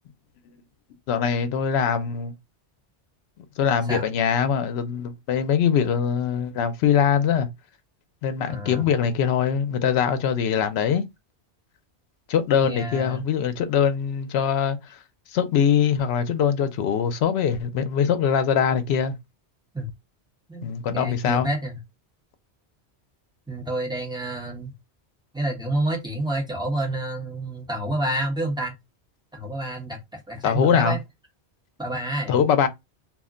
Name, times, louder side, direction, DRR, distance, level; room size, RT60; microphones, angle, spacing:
voice 1, 1.1-2.3 3.6-7.5 8.2-11.0 12.3-14.8 15.3-19.2 20.6-21.5 30.4-31.0 32.3-32.7, left 7 dB, 75° left, 0.8 m, -22 dB
voice 2, 8.5-8.9 12.6-13.2 19.7-19.9 20.5-21.8 23.5-24.7 25.3-28.8 29.3-31.0 31.8-32.4, right 1 dB, 5° right, 0.8 m, -29 dB
2.4 x 2.1 x 3.5 m
omnidirectional pair, 1.1 m